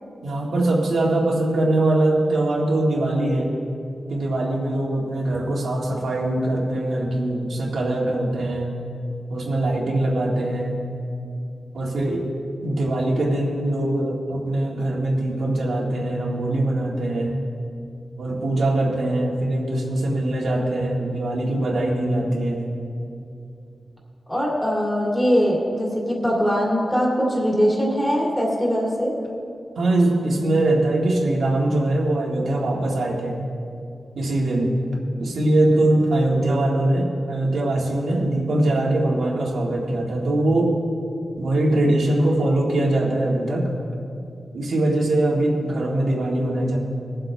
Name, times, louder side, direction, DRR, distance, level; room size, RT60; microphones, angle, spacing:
voice 1, 0.2-3.5 4.1-8.7 9.3-10.8 11.7-12.4 12.6-17.4 18.2-22.7 29.8-33.4 34.2-34.8 35.2-40.8 41.4-43.7 44.5-46.8, right 1 dB, 90° right, -3 dB, 1.9 m, -22 dB
voice 2, 24.3-29.1, equal, 5° left, -4 dB, 2.4 m, -21 dB
21.0 x 7.7 x 3.4 m, 2.6 s
wide cardioid pair, 155°, 0 cm